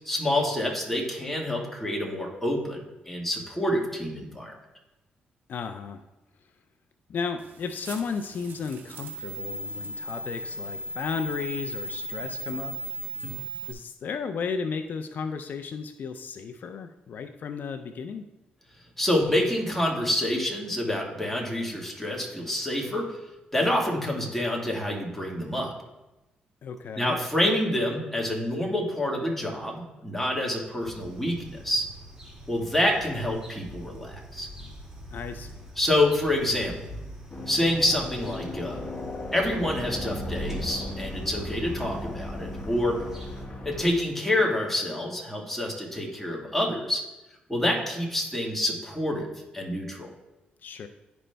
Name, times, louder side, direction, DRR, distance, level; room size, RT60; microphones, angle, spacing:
voice 1, 0.0-4.6 13.2-13.4 19.0-23.2 23.5-25.7 27.0-31.9 32.5-34.5 35.8-36.7 37.5-38.8 39.3-43.0 43.6-47.0 47.5-49.3 49.5-50.1, left 1 dB, 5° left, -1 dB, 1.6 m, -27 dB
voice 2, 5.5-6.0 6.4-6.5 7.1-12.8 13.7-18.3 26.6-27.2 35.1-35.7 50.6-50.9, left 5 dB, 60° left, 8 dB, 0.4 m, -34 dB
sound 1, 7.4-13.7, right 1 dB, 70° right, 0.8 m, -36 dB
sound 2, 30.8-43.5, right 1 dB, 15° right, 2.0 m, -42 dB
sound 3, 37.3-43.9, left 2 dB, 35° left, 1.2 m, -37 dB
11.0 x 5.1 x 2.2 m, 1.0 s
cardioid pair, 70°, 3 cm